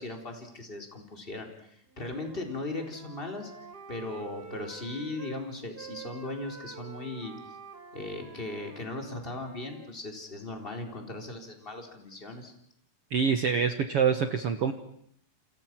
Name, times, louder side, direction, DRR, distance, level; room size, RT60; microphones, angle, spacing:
voice 1, 0.0-3.5 3.9-7.3 7.9-12.5, left 2 dB, 15° left, 4 dB, 3.8 m, -38 dB
Wind instrument woodwind instrument, 1.9-5.4 5.7-9.9, right 6 dB, 35° right, 1.6 m, -48 dB
voice 2, 13.1-14.7, right 6 dB, 80° right, 8 dB, 1.3 m, -25 dB
29.0 x 28.5 x 6.1 m, 0.68 s
omnidirectional pair, 4.7 m